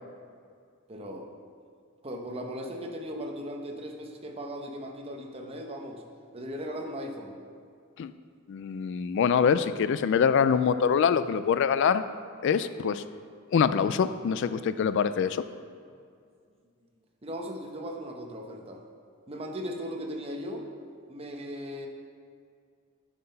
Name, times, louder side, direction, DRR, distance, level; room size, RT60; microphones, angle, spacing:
voice 1, 0.9-1.3 2.0-6.0 6.3-7.4 17.2-18.8 19.3-20.6 21.1-21.9, equal, 30° right, 2 dB, 0.9 m, -37 dB
voice 2, 8.5-12.0 12.4-13.0 13.5-15.4, left 7 dB, 60° left, 13 dB, 0.3 m, -24 dB
9.7 x 5.7 x 5.4 m, 2.2 s
head